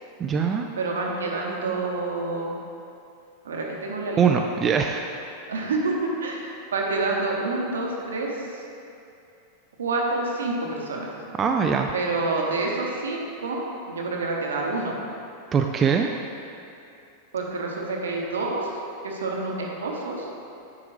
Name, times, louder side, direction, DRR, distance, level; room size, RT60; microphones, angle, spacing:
voice 1, 0.2-0.7 4.2-5.1 11.4-11.9 15.5-16.1, right 6 dB, 25° right, 3 dB, 0.3 m, -22 dB
voice 2, 0.8-2.5 3.4-4.2 5.5-8.7 9.8-11.1 11.9-15.0 17.3-18.7 19.0-20.3, right 3 dB, 65° right, -1 dB, 1.0 m, -28 dB
9.4 x 4.8 x 3.2 m, 2.6 s
figure-of-eight pair, 90°, 0 cm